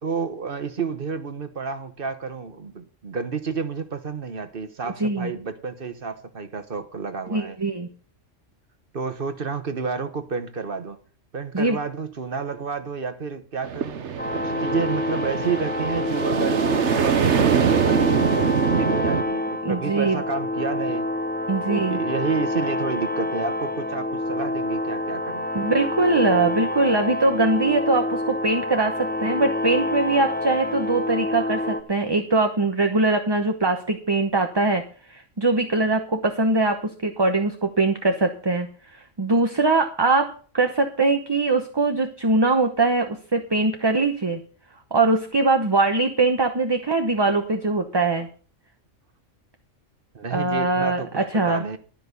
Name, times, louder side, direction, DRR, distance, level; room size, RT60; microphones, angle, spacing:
voice 1, 0.0-7.6 8.9-11.0 11.3-16.6 16.9-21.1 21.6-25.5 50.1-51.8, right 5 dB, 45° right, 1.3 m, -30 dB
voice 2, 7.3-7.9 11.5-11.8 19.6-20.2 21.5-22.0 25.5-34.8 35.1-38.7 39.2-44.4 44.9-48.3 50.3-51.6, right 3 dB, 20° right, 0.9 m, -22 dB
sound 1, 13.6-19.2, right 7 dB, 65° right, 1.2 m, -23 dB
sound 2, 14.2-31.8, left 2 dB, 10° left, 0.7 m, -27 dB
13.0 x 5.8 x 8.2 m
omnidirectional pair, 1.3 m